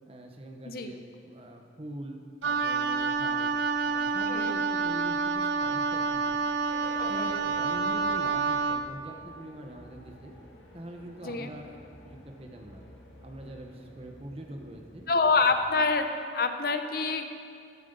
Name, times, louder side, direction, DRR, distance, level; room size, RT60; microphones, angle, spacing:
voice 1, 0.1-3.5 3.9-6.4 7.0-10.3 10.7-11.8 12.0-12.8 13.2-15.1 15.4-15.5, right 1 dB, 30° right, 3 dB, 1.0 m, -43 dB
Wind instrument woodwind instrument, 2.4-8.9, right 4 dB, 85° right, 0.5 m, -28 dB
sound 1, 6.7-15.8, left 1 dB, 85° left, 2.0 m, -50 dB
voice 2, 15.1-17.3, left 4 dB, 50° left, 7 dB, 0.7 m, -26 dB
14.5 x 7.8 x 5.3 m, 2.4 s
head